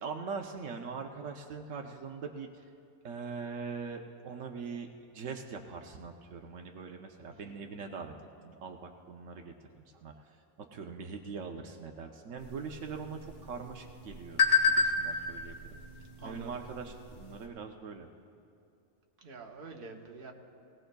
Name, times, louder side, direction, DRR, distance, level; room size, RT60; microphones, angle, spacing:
voice 1, 0.0-2.5 3.0-8.1 8.4-10.1 10.7-14.4 14.7-15.7 16.2-18.1, right 5 dB, 80° right, 3 dB, 1.1 m, -42 dB
sound 1, 12.4-17.5, left 4 dB, 55° left, 1.7 m, -32 dB
voice 2, 16.2-16.6 19.2-20.3, right 4 dB, 50° right, 1 dB, 1.2 m, -46 dB
20.0 x 18.0 x 2.3 m, 2.6 s
omnidirectional pair, 1.3 m